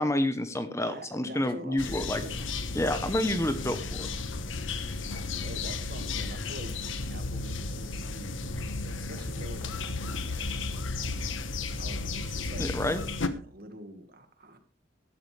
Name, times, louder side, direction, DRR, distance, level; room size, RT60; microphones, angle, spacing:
voice 1, 0.0-2.2 2.7-4.1 12.6-13.0, left 1 dB, 15° left, 10 dB, 1.0 m, -29 dB
voice 2, 0.9-2.5 5.4-6.8 7.0-11.4 11.8-12.7 13.3-14.6, right 1 dB, 50° right, 8 dB, 2.0 m, -46 dB
sound 1, 1.8-13.3, left 3 dB, 85° left, 1.2 m, -34 dB
15.5 x 12.0 x 3.4 m, 0.38 s
head